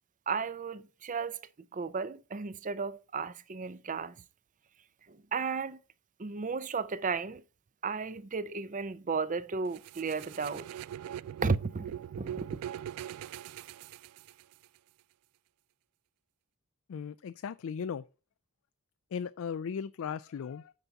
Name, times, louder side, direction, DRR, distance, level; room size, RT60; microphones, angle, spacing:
voice 1, 0.3-1.4 1.7-4.1 5.1-5.8 6.2-7.4 7.8-10.7 11.4-12.5, right 5 dB, 35° right, 0.6 m, -34 dB
sound 1, 9.7-14.7, right 10 dB, 90° right, 0.3 m, -42 dB
voice 2, 16.9-18.0 19.1-20.7, left 7 dB, 65° left, 0.3 m, -37 dB
9.1 x 4.1 x 5.8 m
head